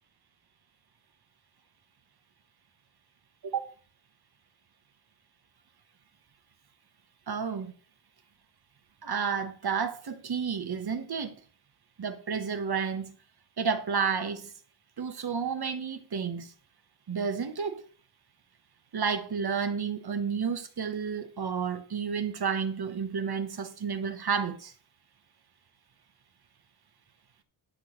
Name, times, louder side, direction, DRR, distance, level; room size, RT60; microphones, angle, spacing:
voice 1, 3.4-3.7 7.3-7.7 9.0-11.4 12.0-13.2 13.6-14.5 15.0-16.5 17.1-17.8 18.9-24.7, right 6 dB, 50° right, 1.3 m, -31 dB
11.5 x 4.0 x 6.4 m
wide cardioid pair, 110°, 50 cm